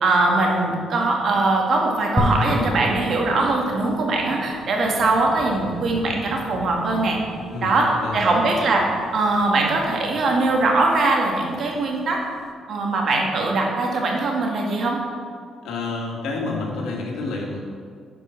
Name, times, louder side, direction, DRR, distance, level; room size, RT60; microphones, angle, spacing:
voice 1, 0.0-7.2 7.6-8.8 9.1-12.2 12.7-15.0, right 2 dB, 60° right, 0 dB, 1.9 m, -21 dB
sound 1, 2.2-12.4, left 1 dB, 10° left, 1.2 m, -32 dB
voice 2, 7.5-8.3 15.6-17.6, left 3 dB, 85° left, -1 dB, 1.8 m, -29 dB
9.7 x 5.2 x 5.9 m, 2.1 s
cardioid pair, 90°, 0 cm